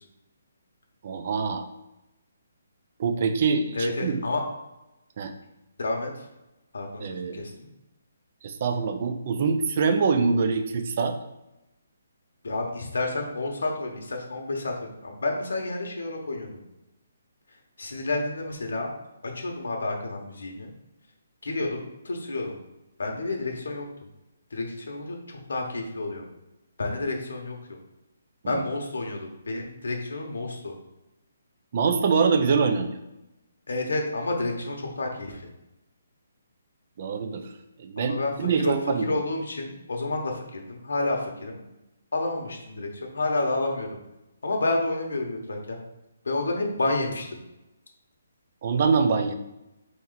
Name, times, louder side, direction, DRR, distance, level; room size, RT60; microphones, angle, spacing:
voice 1, 1.0-1.7 3.0-4.2 5.2-5.3 7.0-7.4 8.4-11.2 28.4-28.6 31.7-33.0 37.0-37.5 37.8-39.1 48.6-49.3, right 5 dB, 35° right, 7 dB, 0.4 m, -24 dB
voice 2, 3.7-4.4 5.8-6.2 6.7-7.7 12.4-16.6 17.8-18.9 19.2-20.7 21.4-22.6 23.0-23.9 24.5-26.2 26.8-27.8 28.5-30.7 33.7-35.4 38.0-38.7 39.0-41.6 42.1-44.0 44.4-45.8 46.2-47.4, left 2 dB, 90° left, 1 dB, 1.0 m, -30 dB
4.1 x 3.1 x 3.9 m, 0.95 s
hypercardioid pair, 170°, 0 cm